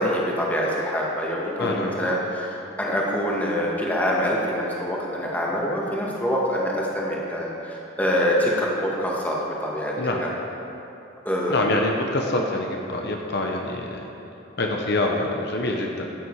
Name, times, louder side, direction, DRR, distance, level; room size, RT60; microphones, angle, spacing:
voice 1, 0.0-9.9 10.2-10.3 11.3-11.6, equal, 10° left, -4 dB, 1.9 m, -25 dB
voice 2, 1.6-2.1 10.0-10.2 11.5-14.1 14.6-16.1, left 2 dB, 55° left, 1 dB, 1.0 m, -25 dB
15.0 x 9.7 x 4.8 m, 2.9 s
head